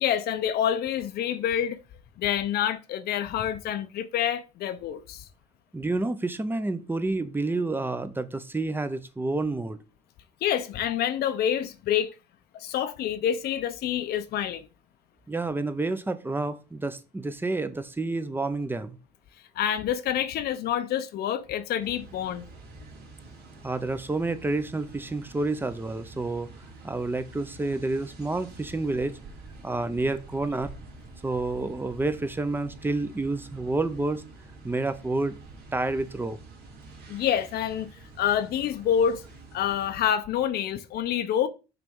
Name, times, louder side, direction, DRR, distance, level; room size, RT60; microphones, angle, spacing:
voice 1, 0.0-1.8 2.2-5.3 10.4-12.1 12.5-14.6 19.6-22.5 37.1-37.9 38.2-39.2 39.5-41.5, left 9 dB, 70° left, 0.8 m, -27 dB
voice 2, 5.7-9.8 15.3-19.0 23.6-26.5 26.8-29.2 29.6-30.7 31.2-34.2 34.6-35.4 35.7-36.4, right 2 dB, 10° right, 0.7 m, -29 dB
sound 1, 21.8-40.0, right 3 dB, 75° right, 2.4 m, -47 dB
5.9 x 3.4 x 5.4 m
cardioid pair, 110°, 17 cm